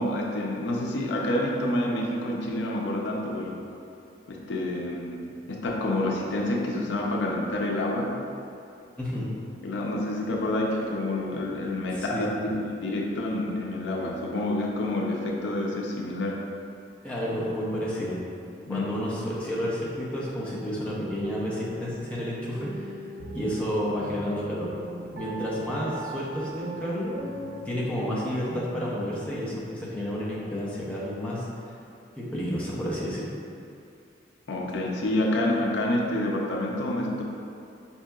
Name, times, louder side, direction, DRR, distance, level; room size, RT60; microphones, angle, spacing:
voice 1, 0.0-3.6 4.3-8.2 9.6-12.5 12.8-16.4 18.7-18.9 34.5-37.2, left 1 dB, 90° left, -1 dB, 0.5 m, -28 dB
voice 2, 9.0-9.3 11.9-12.3 17.0-18.2 18.7-22.7 23.3-24.7 25.1-27.1 27.7-31.5 32.2-33.3, equal, 10° left, -7 dB, 0.6 m, -30 dB
sound 1, 21.0-29.5, right 1 dB, 85° right, 0.5 m, -39 dB
5.2 x 2.8 x 2.3 m, 2.6 s
head